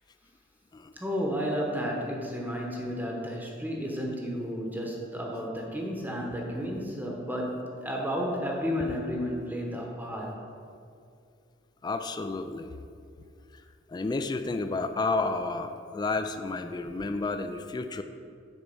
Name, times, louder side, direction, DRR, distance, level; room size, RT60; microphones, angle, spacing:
voice 1, 1.0-10.3, equal, 10° right, -1 dB, 0.9 m, -32 dB
voice 2, 11.8-12.8 13.5-13.6 13.9-18.0, left 3 dB, 20° left, 8 dB, 0.3 m, -31 dB
7.1 x 4.5 x 6.8 m, 2.4 s
head